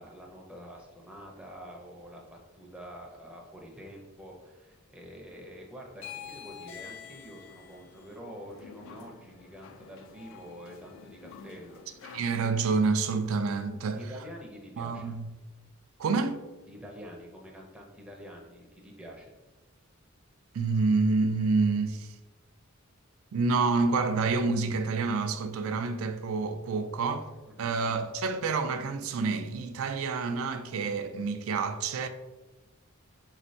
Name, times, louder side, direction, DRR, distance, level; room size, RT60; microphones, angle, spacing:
voice 1, 0.0-12.1 13.9-15.2 16.6-19.3 27.5-27.9, equal, 5° right, 0.5 m, -47 dB
sound 1, 5.9-12.5, left 7 dB, 60° left, 0.3 m, -48 dB
voice 2, 12.1-14.0 14.8-15.3 16.0-16.4 20.5-22.1 23.3-27.3 27.6-32.1, right 4 dB, 70° right, 0.4 m, -28 dB
4.2 x 3.1 x 2.7 m
head